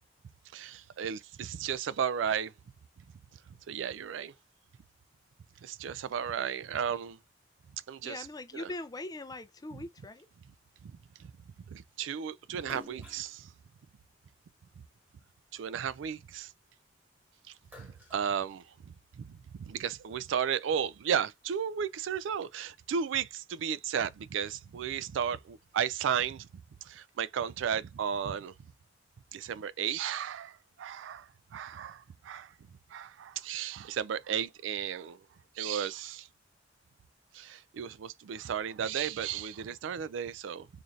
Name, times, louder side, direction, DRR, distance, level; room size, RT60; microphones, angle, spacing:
voice 1, 0.5-2.5 3.7-4.3 5.6-7.2 7.9-8.3 8.5-8.7 9.7-9.8 10.8-10.9 11.2-11.3 11.7-13.5 15.5-16.5 17.8-26.5 26.8-28.5 29.3-32.5 32.9-35.2 35.6-36.3 37.3-40.7, right 8 dB, 80° right, 0.3 m, -34 dB
voice 2, 8.0-10.3, left 2 dB, 20° left, 0.4 m, -41 dB
Splash splatter, 12.6-15.2 15.6-17.1 17.4-19.1, left 2 dB, 10° right, 1.4 m, -53 dB
3.9 x 2.5 x 3.1 m
head